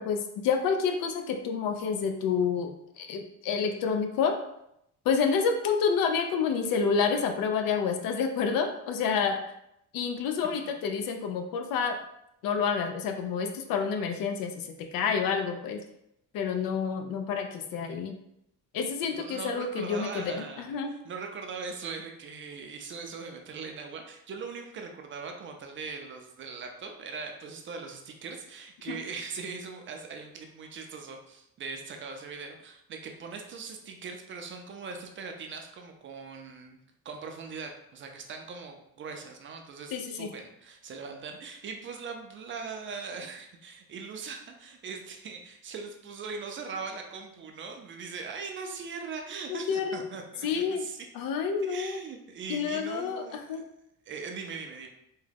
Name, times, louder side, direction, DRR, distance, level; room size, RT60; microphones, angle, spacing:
voice 1, 0.0-2.7 3.0-4.3 5.1-9.4 9.9-12.0 12.4-15.8 16.3-18.1 18.7-20.9 28.9-29.0 39.9-40.3 49.5-50.0 50.4-50.8 51.1-52.0 52.5-53.6, left 6 dB, 75° left, 5 dB, 0.5 m, -29 dB
voice 2, 19.1-36.8 37.0-51.1 51.6-53.6 54.1-54.9, right 5 dB, 35° right, 3 dB, 0.4 m, -40 dB
3.6 x 2.1 x 3.3 m, 0.79 s
cardioid pair, 155°, 34 cm